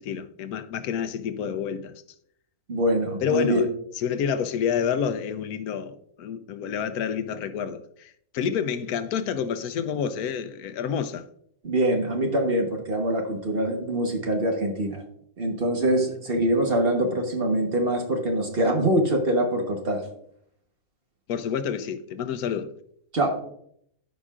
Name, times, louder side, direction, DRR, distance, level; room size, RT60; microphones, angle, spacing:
voice 1, 0.0-2.0 3.2-3.7 3.9-11.2 21.3-22.8, left 7 dB, 85° left, 1.1 m, -29 dB
voice 2, 2.7-3.6 11.6-15.0 15.4-20.0 23.1-23.4, right 1 dB, 40° right, 1.3 m, -24 dB
14.5 x 5.0 x 2.4 m
omnidirectional pair, 1.6 m